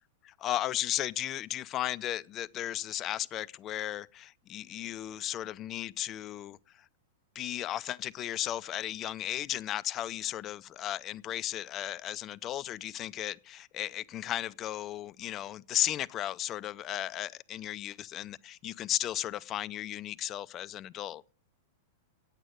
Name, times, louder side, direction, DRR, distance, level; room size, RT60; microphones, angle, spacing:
voice 1, 0.2-6.9 7.3-21.2, left 12 dB, 35° left, 0.4 m, -35 dB
9.0 x 8.0 x 7.8 m
hypercardioid pair, 105°, 0 cm